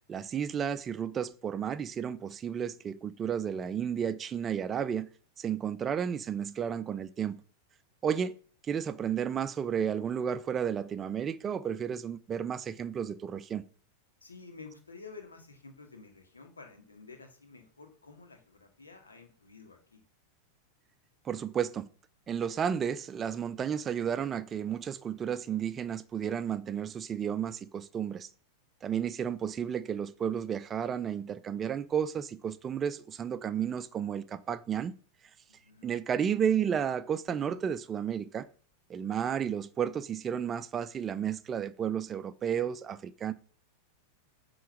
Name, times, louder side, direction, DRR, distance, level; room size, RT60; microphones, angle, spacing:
voice 1, 0.1-5.1 5.4-7.4 8.0-8.3 8.7-13.6 21.2-21.9 22.3-28.3 28.8-34.9 35.8-38.5 38.9-43.3, right 8 dB, 25° right, 0.5 m, -32 dB
voice 2, 14.2-20.0 35.5-35.9, left 4 dB, 75° left, 2.0 m, -51 dB
10.5 x 3.9 x 6.3 m
figure-of-eight pair, 90°, 0 cm